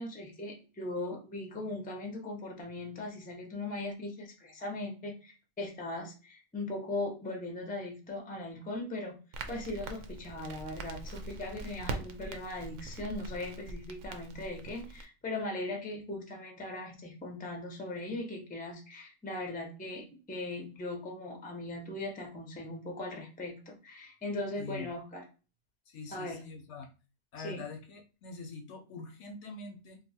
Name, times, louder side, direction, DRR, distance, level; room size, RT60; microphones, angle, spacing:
voice 1, 0.0-9.2 9.5-25.2 26.1-26.4 27.4-27.6, left 2 dB, 10° left, 2 dB, 0.5 m, -39 dB
Crackle, 9.3-15.1, right 3 dB, 70° right, 0.9 m, -42 dB
voice 2, 24.6-24.9 25.9-26.9 27.3-30.0, left 4 dB, 70° left, 5 dB, 0.8 m, -44 dB
2.7 x 2.2 x 4.1 m, 0.34 s
omnidirectional pair, 1.4 m